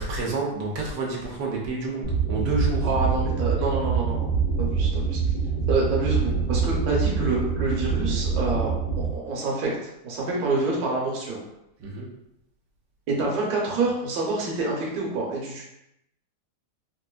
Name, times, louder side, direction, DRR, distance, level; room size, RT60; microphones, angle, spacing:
voice 1, 0.0-2.9 11.8-12.1, right 2 dB, 90° right, -2 dB, 1.3 m, -29 dB
sound 1, 2.0-9.1, right 5 dB, 70° left, 1.7 m, -25 dB
voice 2, 2.8-5.2 5.7-8.7 9.1-9.8 10.0-11.4 13.1-15.6, right 3 dB, 70° right, -3 dB, 1.3 m, -27 dB
3.8 x 2.5 x 2.2 m, 0.83 s
omnidirectional pair, 1.8 m